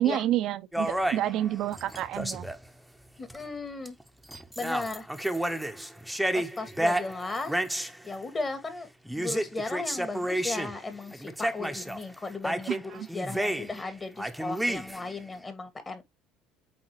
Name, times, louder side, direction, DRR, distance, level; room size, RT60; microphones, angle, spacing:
voice 1, 0.0-2.4 12.7-13.1, right 13 dB, 60° right, 0.7 m, -29 dB
sound 1, 0.7-2.6 3.3-3.4 3.9-4.0 4.3-8.0 9.1-10.8 11.1-12.0 12.4-13.9 14.2-15.1, right 1 dB, ahead, 1.1 m, -31 dB
voice 2, 3.2-4.0 4.6-5.1 5.3-5.8 6.3-7.6 8.0-8.9 9.2-16.0, left 3 dB, 25° left, 2.2 m, -36 dB
8.5 x 3.9 x 3.1 m
hypercardioid pair, 70°, 0 cm